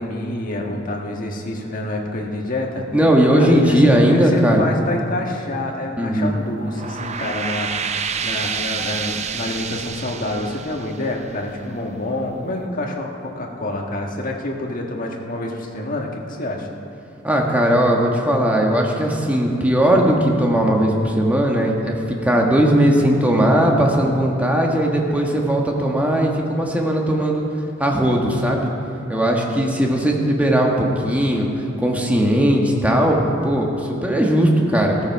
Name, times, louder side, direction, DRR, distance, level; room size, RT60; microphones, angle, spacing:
voice 1, 0.0-2.8 3.3-16.7, left 1 dB, 45° left, 0 dB, 1.5 m, -27 dB
voice 2, 2.9-4.6 6.0-6.4 17.2-27.5 27.8-28.7 29.1-35.1, right 1 dB, 5° right, 0 dB, 1.4 m, -18 dB
sound 1, 6.6-11.8, right 6 dB, 35° right, 0.5 m, -28 dB
15.5 x 13.5 x 4.7 m, 2.8 s
head